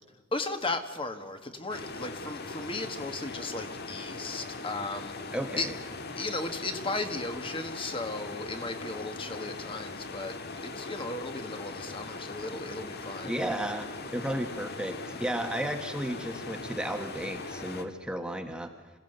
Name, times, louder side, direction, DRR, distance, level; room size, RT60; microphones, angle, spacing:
voice 1, 0.3-5.7 6.2-10.3 10.6-13.3, left 2 dB, 25° left, 7 dB, 1.7 m, -36 dB
sound 1, 1.7-17.8, left 3 dB, 55° left, 1.7 m, -40 dB
voice 2, 5.3-5.8 13.2-18.7, right 1 dB, 5° right, 5 dB, 1.4 m, -33 dB
26.5 x 16.5 x 8.0 m, 1.4 s
head